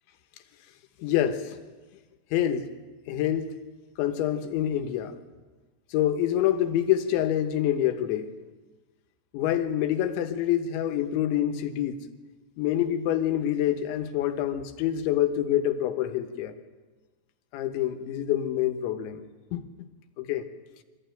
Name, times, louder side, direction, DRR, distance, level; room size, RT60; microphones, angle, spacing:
voice 1, 1.0-1.5 2.3-2.7 3.1-3.6 4.0-5.1 5.9-8.3 9.3-12.0 12.6-16.5 17.5-19.2 19.5-19.6 20.2-20.5, left 11 dB, 90° left, 8 dB, 3.5 m, -26 dB
23.5 x 15.0 x 9.1 m, 1.3 s
omnidirectional pair, 5.2 m